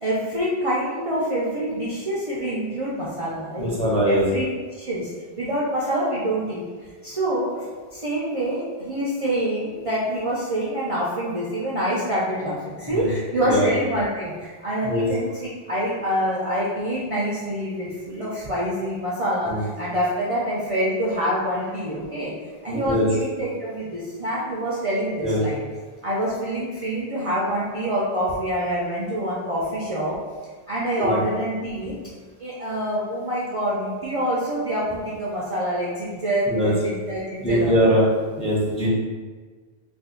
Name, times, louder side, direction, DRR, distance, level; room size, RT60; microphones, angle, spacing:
voice 1, 0.0-3.8 4.0-4.5 4.8-5.1 5.4-6.6 7.0-7.7 7.9-15.3 15.7-22.3 22.6-25.6 26.0-30.1 30.7-31.9 32.4-37.9, equal, 45° right, -7 dB, 0.5 m, -26 dB
voice 2, 3.6-4.2 12.9-13.1 13.4-13.7 14.8-15.1 19.5-19.6 22.7-23.1 25.2-25.4 31.0-31.2 36.5-36.7 37.4-38.0 38.4-38.9, equal, 10° left, -6 dB, 0.5 m, -21 dB
2.5 x 2.4 x 3.7 m, 1.4 s
omnidirectional pair, 1.1 m